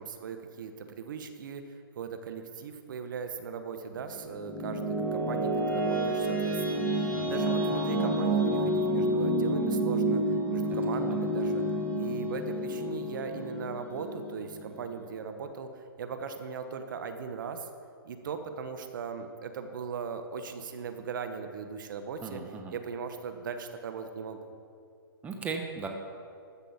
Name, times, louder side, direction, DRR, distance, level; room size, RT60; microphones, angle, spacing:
voice 1, 0.0-1.6 2.0-4.8 5.1-11.6 12.0-17.7 18.0-22.4 22.7-24.4, right 6 dB, 55° right, 7 dB, 1.1 m, -39 dB
sound 1, 4.1-15.0, right 1 dB, 10° left, 2.6 m, -29 dB
voice 2, 22.2-22.8 25.2-25.9, right 5 dB, 10° right, 2 dB, 1.0 m, -37 dB
14.0 x 6.0 x 7.1 m, 2.4 s
hypercardioid pair, 140°, 12 cm